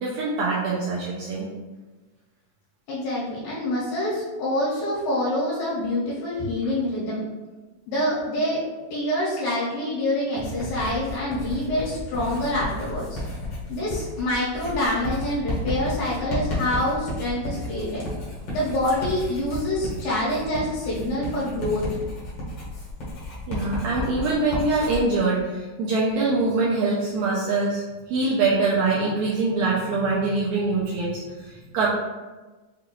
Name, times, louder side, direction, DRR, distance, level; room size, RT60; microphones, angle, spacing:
voice 1, 0.0-1.5 23.5-31.9, right 3 dB, 80° right, -5 dB, 1.7 m, -24 dB
voice 2, 2.9-7.2 7.9-8.6 8.9-13.2 13.7-18.0 18.5-21.8, left 1 dB, 85° left, -8 dB, 2.8 m, -26 dB
Writing, 10.4-25.0, left 1 dB, 65° left, 1.1 m, -32 dB
5.9 x 2.4 x 3.0 m, 1.2 s
omnidirectional pair, 3.8 m